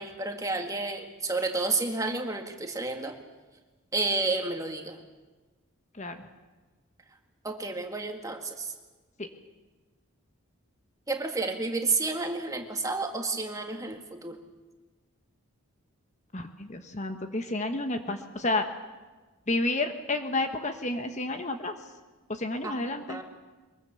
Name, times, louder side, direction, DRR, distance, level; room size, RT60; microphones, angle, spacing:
voice 1, 0.0-3.2 3.9-5.0 7.4-8.7 11.1-14.4 22.6-22.7 23.1-23.2, right 3 dB, 15° right, 4 dB, 1.9 m, -30 dB
voice 2, 16.3-18.7 19.5-21.8 22.3-23.2, left 2 dB, 35° left, 7 dB, 1.3 m, -30 dB
23.0 x 22.5 x 7.0 m, 1.3 s
head